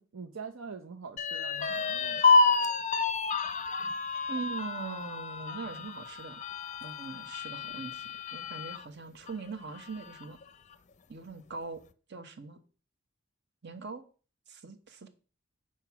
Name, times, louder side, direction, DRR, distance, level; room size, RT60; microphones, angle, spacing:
voice 1, 0.0-2.2, right 5 dB, 80° right, 0.7 m, -44 dB
sound 1, 1.2-8.8 9.3-9.4 9.8-10.4, left 4 dB, 35° left, 0.5 m, -29 dB
voice 2, 4.3-6.4 6.8-10.4 11.1-11.8 12.1-12.6 13.6-14.0 14.5-15.1, right 4 dB, 60° right, 1.1 m, -41 dB
7.8 x 4.7 x 5.9 m
head